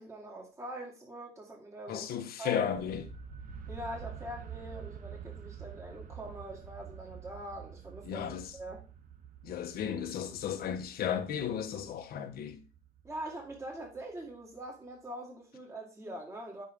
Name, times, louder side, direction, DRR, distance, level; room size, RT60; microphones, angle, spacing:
voice 1, 0.0-2.1 2.4-2.7 3.7-8.3 8.5-8.8 13.0-16.6, right 1 dB, 15° right, 1.8 m, -43 dB
voice 2, 1.9-3.0 8.0-8.5 9.4-12.6, left 9 dB, 65° left, 1.4 m, -34 dB
sound 1, 2.8-14.6, right 7 dB, 55° right, 1.0 m, -48 dB
8.2 x 6.6 x 3.6 m
cardioid pair, 110°, 17 cm